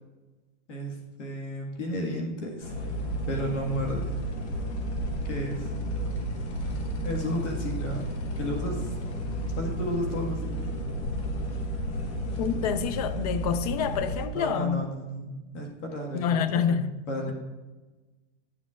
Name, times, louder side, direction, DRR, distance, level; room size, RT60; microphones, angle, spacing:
voice 1, 0.7-2.7 3.3-4.1 5.2-5.7 7.0-8.0 8.4-8.9 9.6-10.6 14.3-16.7 17.1-17.3, equal, 85° left, 1.8 m, -33 dB
sound 1, 2.6-14.3, right 1 dB, 70° left, 1.4 m, -32 dB
voice 2, 12.4-14.9 16.1-17.0, left 7 dB, 35° left, 0.4 m, -27 dB
11.5 x 7.2 x 2.4 m
supercardioid pair, 165°, 35 cm